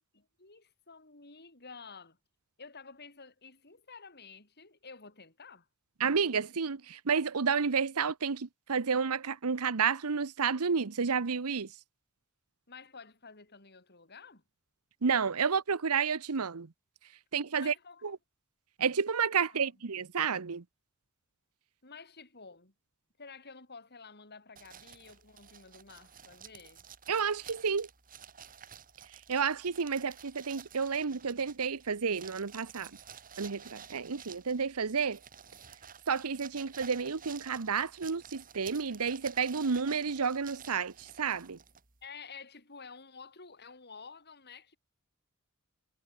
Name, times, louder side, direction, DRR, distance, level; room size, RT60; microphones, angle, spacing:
voice 1, 0.0-2.2 2.6-5.7 12.7-14.4 17.6-18.2 19.5-19.8 21.8-22.7 23.2-26.9 42.0-44.8, left 5 dB, 50° left, 6.4 m, -51 dB
voice 2, 6.0-11.7 15.0-16.7 17.3-17.7 18.8-20.6 27.1-27.9 29.3-32.9 33.4-35.2 36.1-41.6, right 6 dB, 85° right, 0.9 m, -31 dB
sound 1, 24.6-42.1, right 7 dB, 40° right, 3.5 m, -52 dB
head